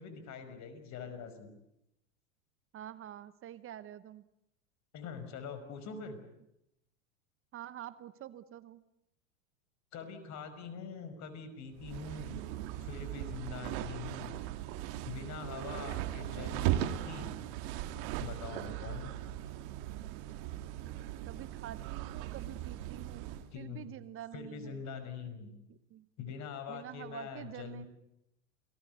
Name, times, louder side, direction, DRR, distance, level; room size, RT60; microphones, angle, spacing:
voice 1, 0.0-1.5 4.9-6.2 9.9-12.4 12.8-14.3 15.0-17.4 18.2-19.1 23.5-23.9 24.3-25.5 26.2-27.9, left 6 dB, 45° left, 10 dB, 5.5 m, -44 dB
voice 2, 2.7-4.2 7.5-8.8 21.3-23.3 23.5-24.8 25.7-26.0 26.7-27.8, right 12 dB, 35° right, 15 dB, 1.0 m, -47 dB
sound 1, 11.8-23.5, right 13 dB, 55° right, 2.0 m, -38 dB
29.0 x 19.0 x 8.1 m, 0.84 s
hypercardioid pair, 100°, 39 cm